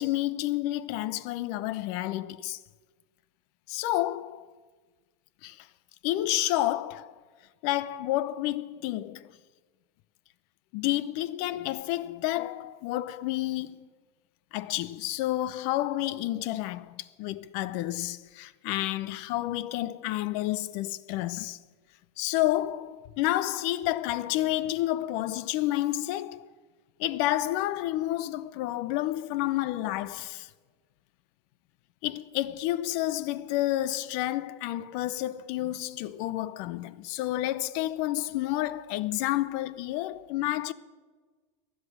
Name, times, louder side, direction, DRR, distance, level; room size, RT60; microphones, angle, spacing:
voice 1, 0.0-2.6 3.7-4.5 5.4-5.7 6.0-7.2 7.6-9.3 10.7-13.9 14.5-21.6 22.2-26.5 27.0-30.5 32.0-40.7, left 15 dB, 50° left, 0.7 m, -30 dB
15.5 x 10.5 x 7.3 m
hypercardioid pair, 95°, 15 cm